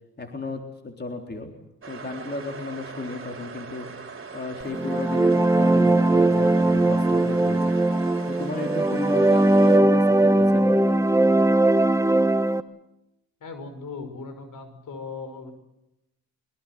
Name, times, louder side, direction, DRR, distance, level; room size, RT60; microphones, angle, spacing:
voice 1, 0.2-1.5 1.9-3.9 4.3-7.7 8.3-10.8, left 3 dB, 30° left, 3 dB, 3.7 m, -34 dB
sound 1, 1.8-9.8, right 5 dB, 35° right, 4.8 m, -40 dB
sound 2, 4.7-12.6, right 2 dB, 10° right, 1.2 m, -19 dB
voice 2, 13.4-15.5, left 4 dB, 60° left, 9 dB, 5.9 m, -38 dB
23.5 x 21.5 x 7.7 m, 0.91 s
cardioid pair, 75°, 35 cm